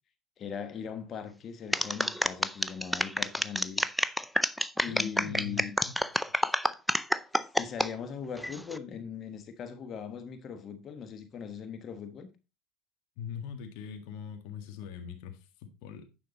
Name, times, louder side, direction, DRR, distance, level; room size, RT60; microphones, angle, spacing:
voice 1, 0.4-3.9 4.8-5.7 7.6-12.3, left 7 dB, 40° left, 1.3 m, -40 dB
sound 1, 1.7-7.9 8.4-8.8, equal, ahead, 0.5 m, -28 dB
voice 2, 4.9-6.0 13.2-16.1, left 7 dB, 75° left, 1.7 m, -41 dB
9.6 x 5.8 x 4.0 m
supercardioid pair, 105°, 0 cm